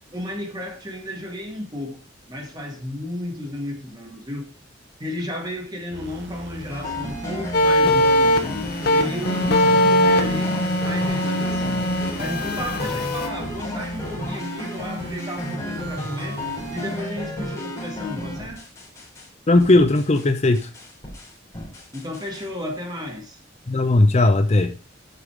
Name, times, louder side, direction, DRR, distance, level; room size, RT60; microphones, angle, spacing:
voice 1, 0.1-4.5 5.0-11.9 12.2-16.4 16.7-18.6 21.9-23.4, left 1 dB, 20° right, 2.0 m, -33 dB
sound 1, 5.9-17.0, right 2 dB, 65° right, 1.4 m, -39 dB
sound 2, 6.7-19.3 19.6-20.3 20.5-22.4, left 1 dB, 15° left, 3.5 m, -32 dB
sound 3, 7.5-13.3, left 2 dB, 55° left, 1.2 m, -21 dB
voice 2, 19.5-20.7 23.7-24.7, left 2 dB, 35° left, 0.6 m, -17 dB
8.2 x 5.7 x 4.8 m
head